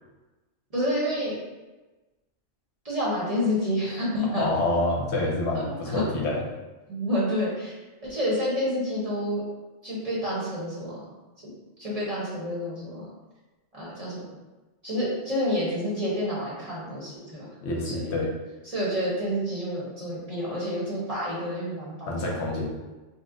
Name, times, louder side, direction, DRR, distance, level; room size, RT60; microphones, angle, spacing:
voice 1, 0.7-1.4 2.8-4.5 5.6-6.0 6.9-7.8 8.0-9.4 9.8-11.1 11.8-13.0 13.7-14.2 14.8-17.5 17.8-18.1 18.6-22.4, equal, 35° right, -7 dB, 0.8 m, -29 dB
voice 2, 4.4-6.4 17.6-18.3 22.1-22.8, left 2 dB, 70° left, -1 dB, 0.8 m, -27 dB
2.9 x 2.0 x 3.6 m, 1.2 s
omnidirectional pair, 1.3 m